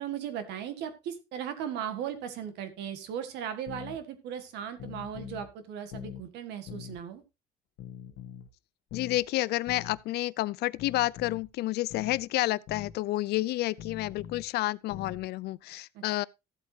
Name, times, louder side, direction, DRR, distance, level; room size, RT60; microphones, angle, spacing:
voice 1, 0.0-7.2 15.9-16.3, right 9 dB, 85° right, 1.7 m, -37 dB
sound 1, 3.7-4.0 4.8-5.5 5.9-6.3 6.7-7.0 7.8-8.5 8.9-9.2 9.7-10.0 10.8-11.5 11.9-12.2 12.7-13.0 13.8-14.5 14.9-15.3, left 10 dB, 90° left, 1.1 m, -43 dB
voice 2, 8.9-16.2, left 17 dB, 75° left, 0.5 m, -30 dB
14.0 x 8.1 x 2.8 m
cardioid pair, 110°, 17 cm